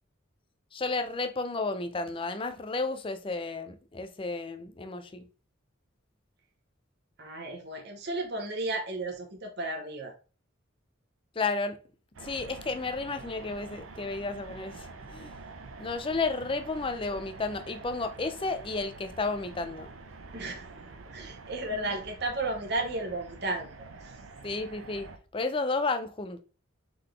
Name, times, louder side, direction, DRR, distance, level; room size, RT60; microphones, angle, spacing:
voice 1, 0.7-5.2 11.4-11.8 12.2-15.3 15.8-19.9 21.7-22.0 24.4-26.4, left 3 dB, 25° left, 0.4 m, -32 dB
voice 2, 7.2-10.1 20.3-20.7 21.1-23.9, right 2 dB, 50° right, 0.9 m, -33 dB
sound 1, 12.1-25.2, right 3 dB, 75° right, 0.6 m, -46 dB
3.9 x 3.8 x 3.2 m
head